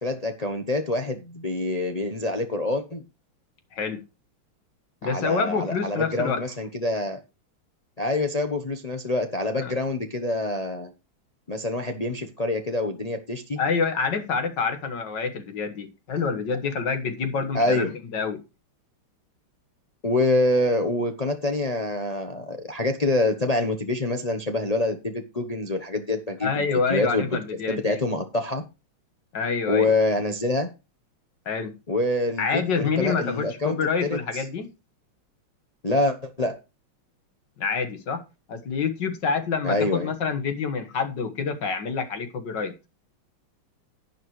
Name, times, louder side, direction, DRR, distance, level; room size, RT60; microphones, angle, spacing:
voice 1, 0.0-3.0 5.0-7.2 8.0-10.9 11.5-13.6 17.5-17.9 20.0-27.4 27.7-28.6 29.7-30.7 31.9-34.4 35.8-36.6 39.6-40.1, left 2 dB, 40° left, 5 dB, 0.5 m, -26 dB
voice 2, 5.0-6.4 9.6-9.7 13.6-18.4 26.4-28.0 29.3-29.9 31.5-31.8 32.4-34.7 37.6-38.2 38.5-42.7, left 5 dB, 60° left, 8 dB, 2.0 m, -27 dB
10.5 x 9.9 x 3.1 m, 0.28 s
omnidirectional pair, 2.3 m